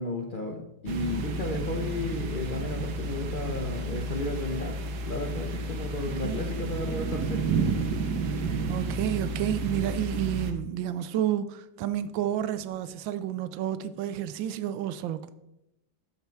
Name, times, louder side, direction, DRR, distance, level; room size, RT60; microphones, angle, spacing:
voice 1, 0.0-4.8 5.0-7.4, left 2 dB, 40° left, 0.7 m, -33 dB
sound 1, 0.9-10.5, right 3 dB, 60° right, 1.4 m, -31 dB
voice 2, 6.2-6.5 8.7-15.3, right 11 dB, 80° right, 1.4 m, -30 dB
12.5 x 5.7 x 4.6 m
omnidirectional pair, 2.1 m